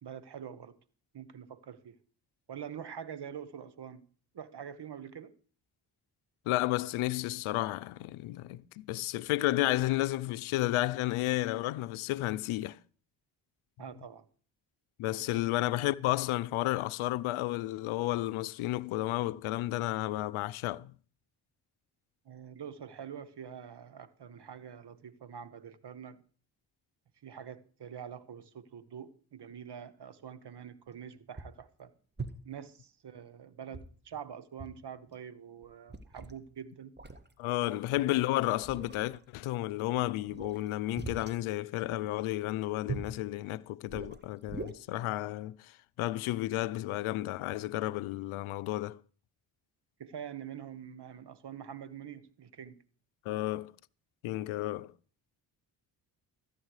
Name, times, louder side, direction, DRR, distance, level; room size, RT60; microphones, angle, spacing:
voice 1, 0.0-0.8 1.1-2.0 2.5-4.0 4.3-5.4 13.8-14.3 15.2-15.6 22.2-26.2 27.2-31.9 32.4-36.9 37.6-37.8 50.0-52.8, right 8 dB, 55° right, 1.4 m, -45 dB
voice 2, 6.5-12.8 15.0-20.9 37.4-49.0 53.3-53.7 54.2-54.9, left 16 dB, 75° left, 0.6 m, -32 dB
sound 1, 30.9-31.0 31.4-31.7 32.2-32.6 33.7-34.3 34.6-34.8 35.1-35.2 35.6-36.4 37.0-37.3 38.0-38.2 38.6-39.2 40.3-41.4 42.9-43.2 43.9-44.7, right 4 dB, 20° right, 1.7 m, -42 dB
14.0 x 9.9 x 4.8 m
hypercardioid pair, 45°, 49 cm